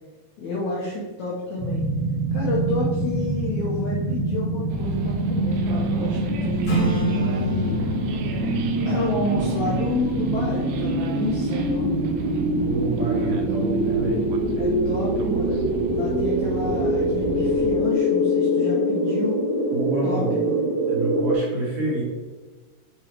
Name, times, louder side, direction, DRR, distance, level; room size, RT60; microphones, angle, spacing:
voice 1, 0.4-1.9 2.3-7.8 8.6-11.9 14.6-19.4 20.0-20.6, left 2 dB, 75° left, -4 dB, 1.7 m, -30 dB
sound 1, 1.6-21.3, right 1 dB, 30° right, 1.5 m, -24 dB
sound 2, 4.7-17.7, right 5 dB, 80° right, 2.2 m, -34 dB
Acoustic guitar / Strum, 6.6-11.9, right 3 dB, 50° left, 2.5 m, -30 dB
voice 2, 12.6-14.2 19.7-20.3 20.9-22.0, right 2 dB, 60° right, -5 dB, 3.4 m, -28 dB
7.6 x 3.8 x 4.4 m, 1.3 s
omnidirectional pair, 4.7 m